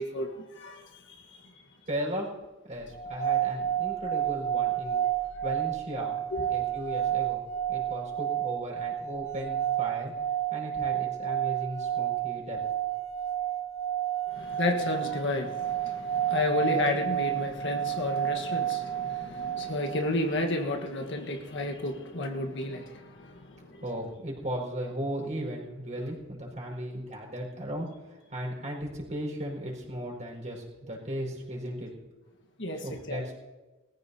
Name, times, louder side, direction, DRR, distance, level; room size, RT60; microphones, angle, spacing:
voice 1, 0.0-1.5 6.3-6.5 14.3-23.8 32.6-33.2, left 2 dB, 60° left, 3 dB, 1.5 m, -32 dB
voice 2, 1.9-2.3 2.6-5.0 5.4-7.4 7.7-10.1 10.5-12.6 23.8-31.9 32.8-33.3, equal, 40° right, -2 dB, 5.1 m, -36 dB
sound 1, 2.9-20.1, right 11 dB, 80° right, 0.8 m, -30 dB
22.0 x 14.5 x 2.9 m, 1.2 s
head